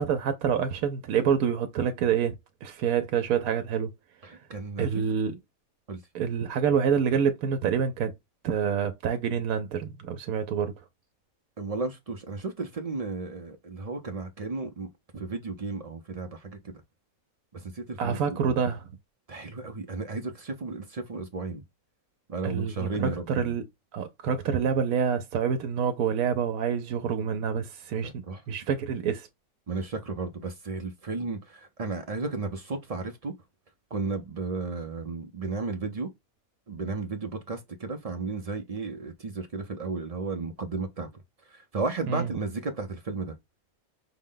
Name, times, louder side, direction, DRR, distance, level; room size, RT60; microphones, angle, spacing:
voice 1, 0.0-2.4 2.6-3.9 4.8-5.4 6.1-8.1 8.4-10.7 18.0-18.9 22.4-23.6 23.9-29.3 42.1-42.3, right 7 dB, 90° right, 1.1 m, -27 dB
voice 2, 4.2-5.0 5.9-6.0 11.6-16.7 17.5-18.2 18.4-18.6 19.3-21.6 22.3-23.5 28.0-28.4 29.7-33.3 33.9-36.1 36.7-41.1 41.5-43.4, right 3 dB, 55° right, 0.4 m, -34 dB
5.7 x 2.1 x 3.7 m
omnidirectional pair, 1.5 m